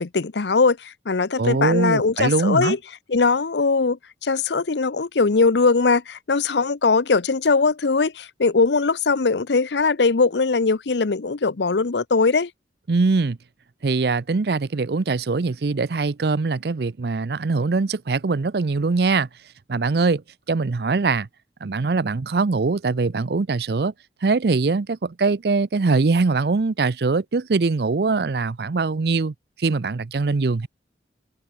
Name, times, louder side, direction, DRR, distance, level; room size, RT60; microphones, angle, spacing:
voice 1, 0.0-2.8 3.1-12.5, left 4 dB, 80° left, 0.7 m, -20 dB
voice 2, 1.4-2.8 12.9-13.4 13.8-19.3 19.7-20.2 20.5-21.3 21.6-23.9 24.2-30.7, right 4 dB, 60° right, 0.6 m, -22 dB
head